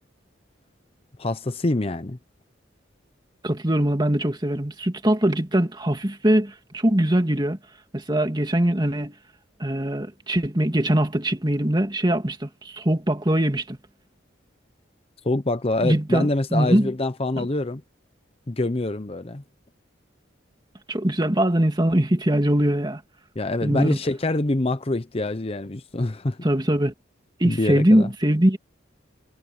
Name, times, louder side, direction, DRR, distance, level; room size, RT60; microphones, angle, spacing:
voice 1, 1.2-2.2 15.2-17.8 18.5-19.4 23.4-26.4 27.4-28.1, left 2 dB, 30° left, 0.8 m, -25 dB
voice 2, 3.4-7.6 7.9-9.1 9.6-13.8 15.8-16.9 17.4-17.5 20.9-23.0 23.6-24.0 26.4-26.9 27.4-28.6, right 1 dB, 25° right, 2.4 m, -22 dB
head